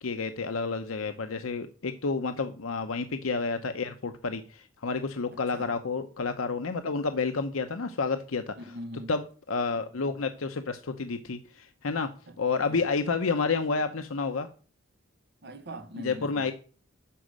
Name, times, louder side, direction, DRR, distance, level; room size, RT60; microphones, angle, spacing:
voice 1, 0.0-8.5 9.1-12.1 12.4-14.5 16.0-16.5, left 4 dB, 90° left, 0.8 m, -30 dB
voice 2, 8.6-9.1 12.3-12.4 12.6-12.8 15.4-16.5, right 1 dB, 55° right, 1.1 m, -41 dB
11.5 x 5.0 x 6.4 m
head